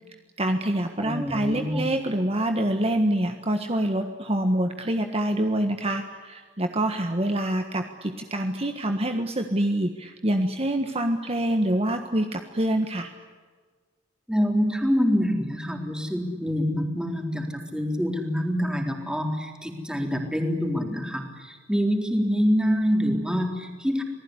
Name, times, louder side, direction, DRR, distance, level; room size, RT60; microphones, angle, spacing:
voice 1, 0.4-13.1, right 1 dB, 30° right, 5 dB, 1.5 m, -26 dB
voice 2, 1.0-1.8 14.3-24.0, equal, 5° right, 3 dB, 3.9 m, -26 dB
27.5 x 19.5 x 9.9 m, 1.5 s
head